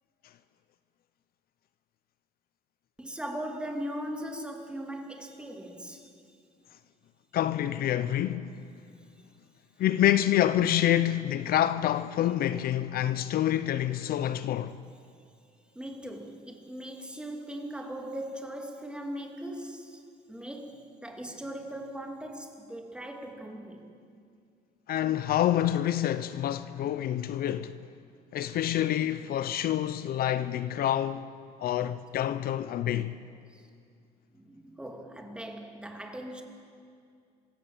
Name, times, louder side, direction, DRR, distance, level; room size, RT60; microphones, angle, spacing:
voice 1, 3.0-6.1 15.7-20.0 20.3-24.0 33.5-33.6 34.3-36.4, right 1 dB, 5° right, 2.8 m, -39 dB
voice 2, 7.3-8.6 9.8-14.8 24.9-27.8 28.3-31.3 31.6-33.1, left 12 dB, 65° left, 0.7 m, -27 dB
26.0 x 16.5 x 7.3 m
cardioid pair, 110°, 17 cm